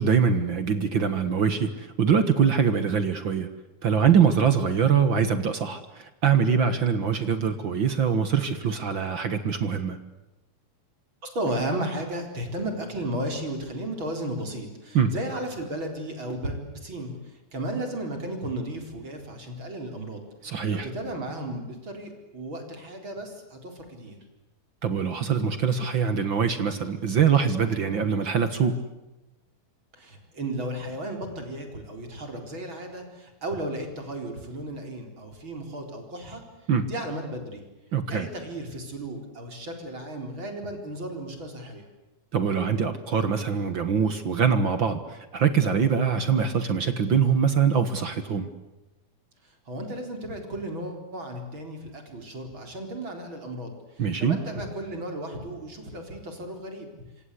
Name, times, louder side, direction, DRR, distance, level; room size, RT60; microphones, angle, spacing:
voice 1, 0.0-3.5 3.8-10.0 14.9-15.1 20.4-20.9 24.8-28.8 36.7-36.9 37.9-38.3 42.3-48.5 54.0-54.4, right 6 dB, 60° right, 10 dB, 1.3 m, -23 dB
voice 2, 11.2-24.2 29.9-36.4 36.8-37.6 38.1-41.8 49.4-56.9, right 1 dB, 30° right, 4 dB, 4.6 m, -34 dB
26.5 x 26.5 x 8.3 m, 1.0 s
omnidirectional pair, 4.4 m